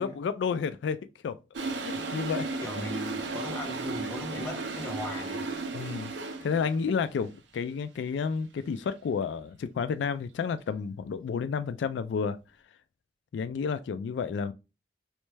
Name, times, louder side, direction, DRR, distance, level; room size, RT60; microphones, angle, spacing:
voice 1, 0.0-2.5 2.8-2.9 5.7-6.1 6.4-12.4 13.3-14.5, left 6 dB, 85° left, 0.3 m, -31 dB
Toilet flush, 1.5-6.8, right 3 dB, 90° right, 0.6 m, -35 dB
voice 2, 2.6-5.5, left 1 dB, 15° left, 1.1 m, -37 dB
3.2 x 3.0 x 3.3 m
head